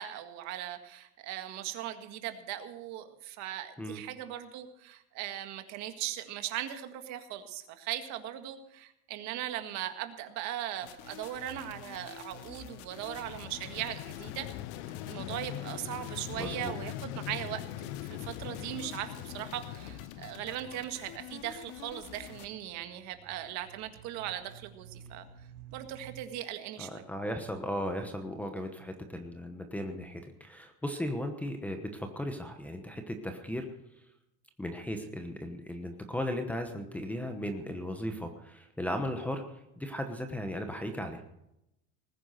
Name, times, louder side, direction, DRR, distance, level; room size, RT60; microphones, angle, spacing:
voice 1, 0.0-14.5 15.1-25.3 25.7-27.0, right 12 dB, 50° right, 8 dB, 1.8 m, -39 dB
sound 1, 10.8-22.5, left 9 dB, 85° left, 2.2 m, -48 dB
Vehicle, 12.8-21.8, left 15 dB, 65° left, 0.6 m, -42 dB
sound 2, 15.0-26.2, right 8 dB, 80° right, 2.4 m, -57 dB
voice 2, 16.4-16.7 26.8-33.7 34.6-39.4 39.8-41.2, left 1 dB, 5° left, 6 dB, 1.1 m, -36 dB
19.5 x 9.9 x 6.6 m, 0.82 s
cardioid pair, 175°, 35 cm